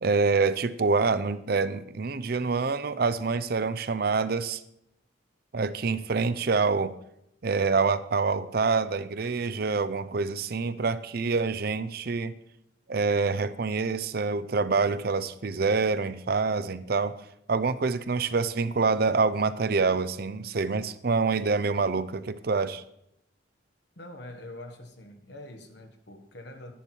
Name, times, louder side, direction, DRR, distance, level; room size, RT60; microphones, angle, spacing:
voice 1, 0.0-4.6 5.5-6.9 7.4-12.3 12.9-17.2 17.5-22.8, right 4 dB, 55° right, 14 dB, 0.5 m, -26 dB
voice 2, 23.9-26.7, left 1 dB, 60° left, 5 dB, 1.5 m, -44 dB
11.5 x 10.0 x 4.5 m, 0.78 s
head